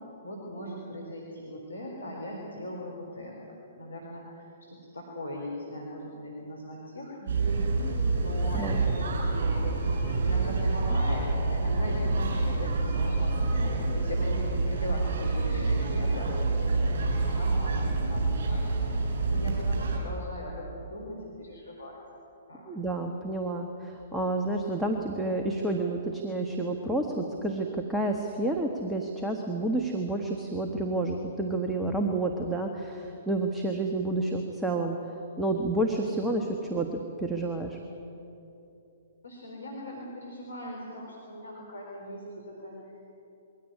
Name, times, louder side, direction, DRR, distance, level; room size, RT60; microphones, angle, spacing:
voice 1, 0.2-9.8 10.2-13.6 13.9-22.0 22.5-22.6 39.2-42.8, left 1 dB, 80° left, -2 dB, 4.2 m, -40 dB
sound 1, 7.3-20.0, right 3 dB, 55° right, 7.6 m, -27 dB
sound 2, 8.2-14.3, left 2 dB, 20° left, 1.5 m, -42 dB
voice 2, 22.7-35.0 35.4-37.8, right 2 dB, 5° right, 2 dB, 1.6 m, -30 dB
22.5 x 17.0 x 9.8 m, 2.9 s
figure-of-eight pair, 120°, 0 cm